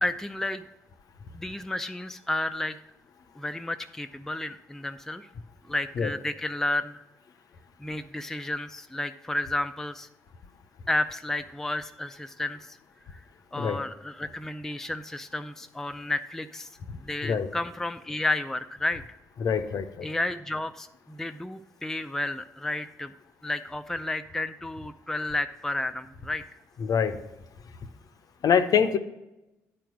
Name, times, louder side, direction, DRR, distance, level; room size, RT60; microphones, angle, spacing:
voice 1, 0.0-0.7 1.3-2.8 3.4-5.3 5.6-7.0 7.8-10.1 10.9-12.8 13.1-13.2 13.5-16.7 17.0-19.0 20.0-23.1 23.4-26.4, left 2 dB, 5° left, 8 dB, 0.4 m, -31 dB
voice 2, 19.4-20.1 26.8-27.1 28.4-29.0, left 7 dB, 50° left, 10 dB, 0.6 m, -24 dB
10.0 x 4.5 x 6.2 m, 0.94 s
figure-of-eight pair, 40°, 8 cm